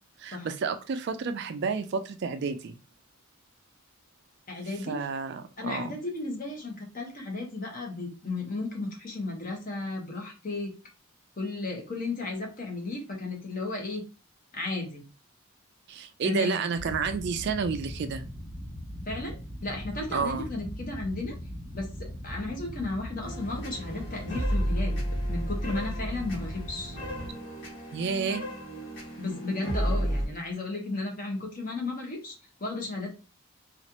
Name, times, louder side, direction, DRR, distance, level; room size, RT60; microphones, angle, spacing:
voice 1, 0.2-2.7 4.9-5.9 15.9-18.2 20.1-20.5 27.9-28.4, right 5 dB, 50° right, 9 dB, 0.3 m, -30 dB
voice 2, 4.5-5.0 5.6-10.8 11.4-14.0 14.5-15.0 16.2-16.6 19.1-21.3 21.7-27.0 29.2-32.3 32.6-33.1, left 2 dB, 40° left, 0 dB, 1.0 m, -34 dB
sound 1, 16.7-27.3, equal, 10° left, 1.5 m, -40 dB
sound 2, 23.2-30.3, equal, 55° left, 1.6 m, -32 dB
4.1 x 2.5 x 2.8 m, 0.32 s
head